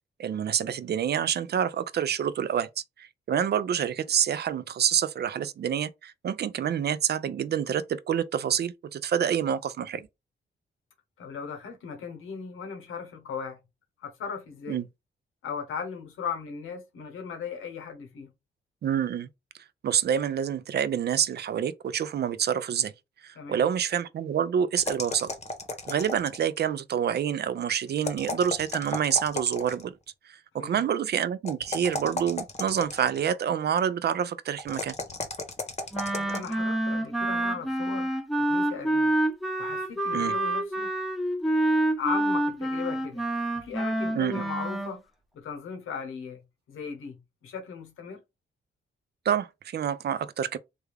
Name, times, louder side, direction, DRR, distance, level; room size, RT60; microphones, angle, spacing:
voice 1, 0.2-2.7 3.0-10.1 14.7-14.8 18.8-19.3 19.8-22.9 23.2-25.3 25.9-29.9 30.3-34.9 40.1-40.3 44.1-44.4 49.3-50.6, right 8 dB, 55° right, 0.4 m, -27 dB
voice 2, 11.2-13.6 14.0-14.8 15.4-18.3 23.4-23.7 30.6-30.8 36.1-38.1 38.5-39.2 39.6-40.9 42.0-43.2 43.5-45.0 45.3-46.4 46.7-47.1 47.4-48.2, left 6 dB, 90° left, 1.0 m, -37 dB
sound 1, 24.8-26.6 28.0-29.9 31.4-33.3 34.6-36.5, left 2 dB, 30° left, 0.8 m, -34 dB
Wind instrument woodwind instrument, 35.9-44.9, right 1 dB, ahead, 0.8 m, -27 dB
3.4 x 2.3 x 3.2 m
cardioid pair, 60°, 21 cm